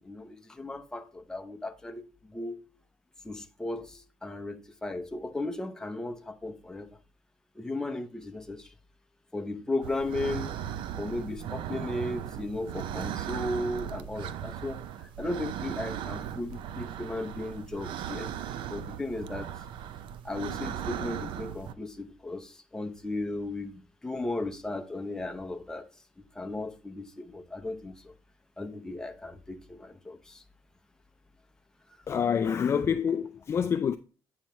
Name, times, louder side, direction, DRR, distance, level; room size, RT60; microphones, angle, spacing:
voice 1, 0.0-2.6 3.2-6.9 7.6-8.7 9.3-10.5 11.0-18.3 18.7-19.5 20.2-25.9 26.3-28.1 28.6-30.4, left 2 dB, 5° left, 0.7 m, -36 dB
sound 1, 9.8-21.7, right 10 dB, 75° right, 0.5 m, -37 dB
voice 2, 32.1-34.0, left 7 dB, 30° left, 0.3 m, -27 dB
8.8 x 5.6 x 3.1 m
cardioid pair, 145°, 8 cm